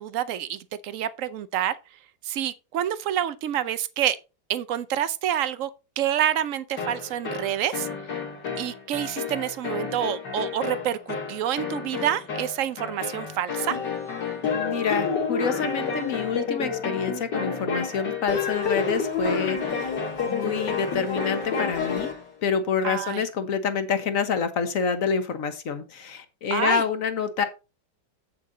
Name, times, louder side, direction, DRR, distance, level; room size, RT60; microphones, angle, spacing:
voice 1, 0.0-1.8 2.2-4.2 4.5-5.7 6.0-7.9 8.6-13.8 22.8-23.2 26.5-26.8, right 10 dB, 65° right, 0.8 m, -27 dB
sound 1, 6.8-22.2, left 5 dB, 65° left, 2.8 m, -30 dB
voice 2, 14.4-19.9 20.2-22.1 22.4-27.4, left 6 dB, 50° left, 1.4 m, -27 dB
8.2 x 7.5 x 4.0 m
omnidirectional pair, 2.0 m